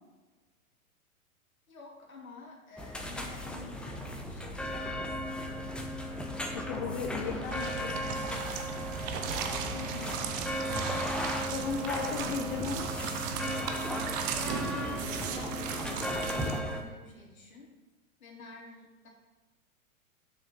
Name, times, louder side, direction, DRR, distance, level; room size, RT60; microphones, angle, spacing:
voice 1, 1.7-5.4 7.2-8.6 9.0-9.8 14.5-17.7 18.2-19.1, left 2 dB, 75° left, -2 dB, 3.1 m, -49 dB
sound 1, 2.8-16.8, equal, ahead, 0.8 m, -36 dB
voice 2, 6.5-8.1 9.6-10.4 11.4-12.9, left 5 dB, 40° left, 2 dB, 1.1 m, -36 dB
sound 2, 7.4-16.6, right 7 dB, 15° right, 0.3 m, -37 dB
7.2 x 6.3 x 6.1 m, 1.2 s
figure-of-eight pair, 110°, 42 cm